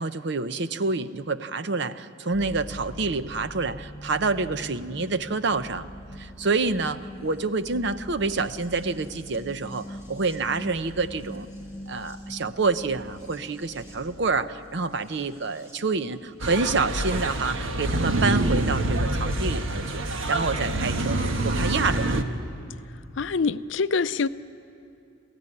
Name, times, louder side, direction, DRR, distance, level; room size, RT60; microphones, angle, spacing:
voice 1, 0.0-5.9 6.2-11.5 11.9-22.4, right 3 dB, 60° right, 12 dB, 0.8 m, -28 dB
sound 1, 2.3-19.3 20.5-20.6, equal, 15° right, 4.2 m, -43 dB
sound 2, 16.4-22.2, right 1 dB, 80° right, 1.3 m, -26 dB
voice 2, 23.2-24.3, left 4 dB, 65° left, 14 dB, 0.5 m, -25 dB
28.0 x 15.0 x 9.8 m, 2.6 s
head